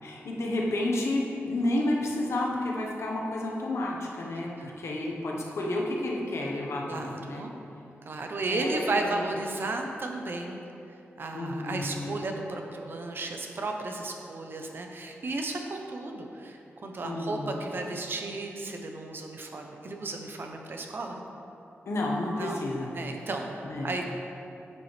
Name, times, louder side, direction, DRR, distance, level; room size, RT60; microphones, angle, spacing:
voice 1, 0.0-7.5 8.5-9.3 11.3-12.3 17.0-17.8 21.8-22.9 23.6-23.9, left 1 dB, 75° left, -2 dB, 1.2 m, -31 dB
voice 2, 6.9-7.5 8.0-10.6 11.2-21.2 22.3-22.7 22.9-23.5 23.8-24.1, right 2 dB, 50° right, 3 dB, 0.8 m, -34 dB
9.7 x 7.0 x 3.3 m, 2.8 s
wide cardioid pair, 150°, 5 cm